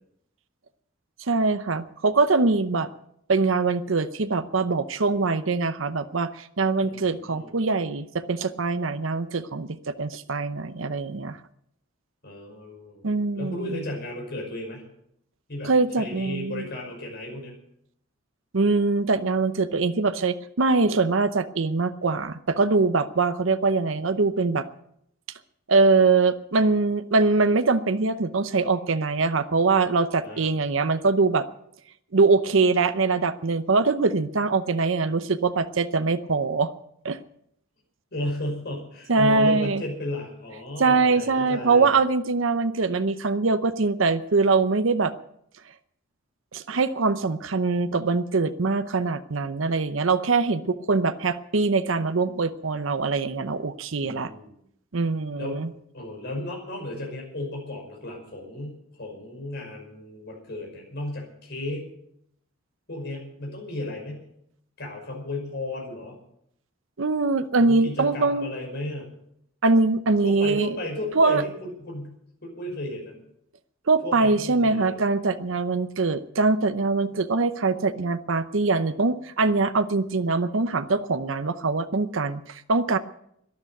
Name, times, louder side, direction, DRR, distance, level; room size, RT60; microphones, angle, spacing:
voice 1, 1.2-2.9 3.3-11.4 13.0-13.6 15.6-16.6 18.5-24.7 25.7-31.5 32.1-36.7 37.0-37.2 39.1-39.8 40.8-45.1 46.5-54.3 54.9-55.7 67.0-68.5 69.6-70.7 71.2-71.4 73.9-83.0, right 3 dB, 70° right, 11 dB, 0.8 m, -23 dB
voice 2, 6.8-7.5 12.2-14.8 15.5-17.5 30.2-30.5 38.1-41.9 54.0-54.5 55.4-55.6 55.9-61.9 62.9-64.2 64.8-66.2 67.6-69.1 70.2-72.2 72.4-73.2 74.0-75.1, left 1 dB, 55° left, 1 dB, 5.7 m, -34 dB
12.5 x 11.0 x 9.0 m, 0.74 s
head